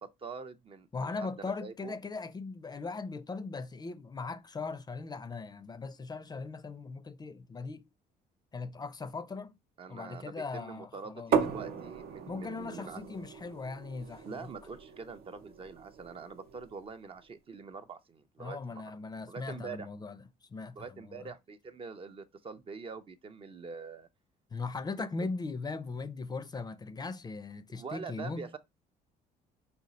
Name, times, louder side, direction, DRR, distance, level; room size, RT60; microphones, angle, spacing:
voice 1, 0.0-1.9 9.8-13.0 14.2-18.8 19.3-19.9 20.8-24.1 25.2-25.3 27.8-28.6, right 5 dB, 35° right, 0.5 m, -44 dB
voice 2, 0.9-7.8 8.5-9.5 9.9-11.3 12.3-14.5 18.4-20.2 20.5-21.3 24.5-28.5, left 4 dB, 25° left, 0.5 m, -39 dB
sound 1, 11.3-17.0, right 6 dB, 65° right, 0.8 m, -36 dB
5.1 x 2.4 x 4.0 m
cardioid pair, 110°, 17 cm